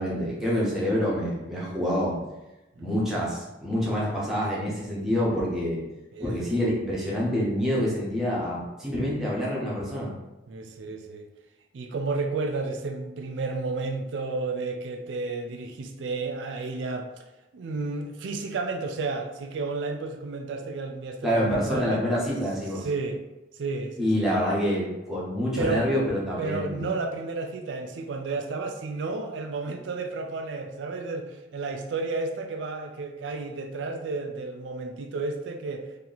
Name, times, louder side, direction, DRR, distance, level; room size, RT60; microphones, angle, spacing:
voice 1, 0.0-2.2 2.8-5.8 6.2-10.1 21.2-22.9 24.0-26.9, equal, ahead, -7 dB, 0.9 m, -27 dB
voice 2, 6.1-6.5 10.5-11.3 11.7-17.1 17.5-22.0 22.8-23.2 23.5-24.3 25.6-25.9 26.4-35.9, right 3 dB, 75° right, 5 dB, 0.4 m, -32 dB
2.9 x 2.8 x 3.9 m, 1.0 s
head